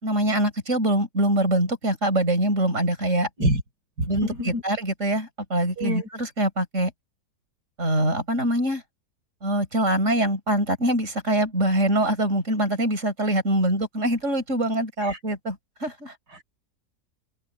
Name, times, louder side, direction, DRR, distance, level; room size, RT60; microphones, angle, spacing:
voice 1, 0.0-3.3 4.1-6.9 7.8-8.8 9.4-16.1, right 1 dB, 45° right, 6.0 m, -24 dB
voice 2, 4.0-4.6 5.8-6.1 15.0-15.2 16.3-16.4, right 1 dB, 80° right, 5.7 m, -26 dB
open air
omnidirectional pair, 1.7 m